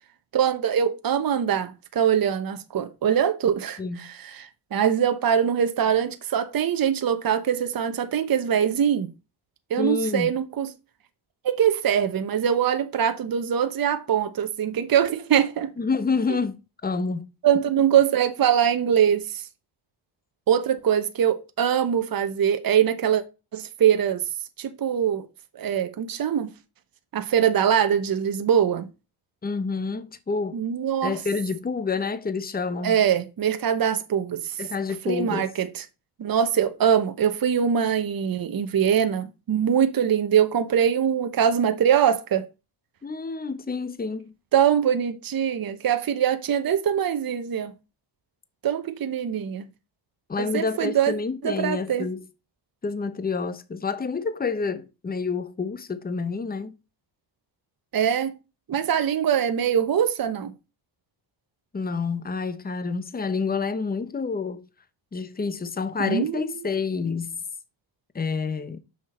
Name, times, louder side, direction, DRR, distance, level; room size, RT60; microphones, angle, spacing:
voice 1, 0.3-9.1 9.7-10.7 11.4-15.7 17.4-19.4 20.5-23.2 23.5-24.2 24.6-25.3 25.5-26.5 27.1-28.9 30.5-31.2 32.8-34.6 35.0-35.8 36.2-42.5 44.5-47.7 48.6-49.6 50.4-51.1 51.4-52.1 57.9-58.3 58.7-60.5 66.0-66.7, right 8 dB, 45° right, 1.0 m, -23 dB
voice 2, 3.8-4.1 9.8-10.3 15.8-17.3 17.5-17.8 29.4-30.6 31.0-33.0 34.6-35.5 43.0-44.3 50.3-52.3 52.8-56.8 61.7-64.7 65.1-67.4 68.1-68.8, left 4 dB, 20° left, 0.8 m, -28 dB
6.3 x 6.0 x 4.2 m
cardioid pair, 100°, 47 cm